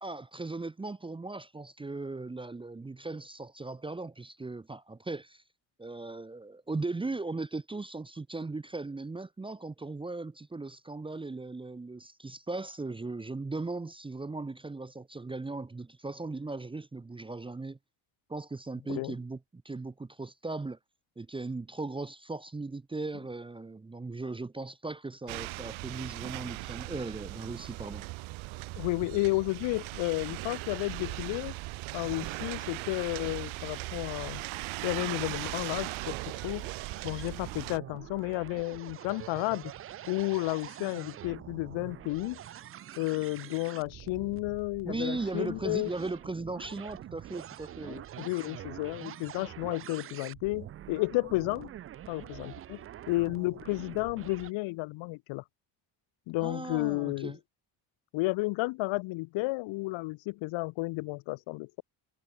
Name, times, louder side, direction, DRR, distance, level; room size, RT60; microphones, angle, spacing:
voice 1, 0.0-5.4 5.8-17.8 18.3-20.8 21.2-28.0 44.8-48.0 56.4-57.4, right 3 dB, 10° right, 0.9 m, -38 dB
sound 1, 25.3-37.8, right 21 dB, 85° right, 0.8 m, -39 dB
voice 2, 28.8-31.5 31.9-34.4 34.8-36.7 37.0-39.7 40.1-42.4 43.0-45.9 47.9-51.7 52.1-52.8 53.1-55.4 56.3-57.4 58.1-61.8, left 23 dB, 75° left, 0.6 m, -32 dB
sound 2, 35.6-54.5, right 11 dB, 30° right, 0.4 m, -45 dB
cardioid pair, 165°, 46 cm